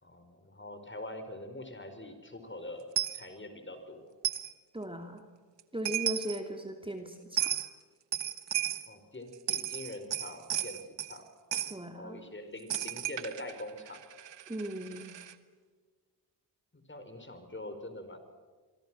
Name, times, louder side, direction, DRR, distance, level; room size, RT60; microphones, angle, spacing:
voice 1, 0.0-2.9 3.1-4.1 8.9-11.2 11.9-14.0 16.7-18.2, left 1 dB, 25° left, 8 dB, 4.8 m, -44 dB
Coin (dropping), 3.0-3.2 4.2-4.5 5.6-5.7 5.9-6.4 7.4-7.7 8.1-8.9 9.3-11.2 11.5-11.8 12.7-15.3, right 11 dB, 65° right, 1.5 m, -34 dB
voice 2, 4.7-5.2 5.7-7.5 11.7-12.2 14.5-15.1, right 1 dB, 10° right, 4 dB, 2.9 m, -38 dB
26.5 x 23.0 x 6.3 m, 1.5 s
supercardioid pair, 50°, 46 cm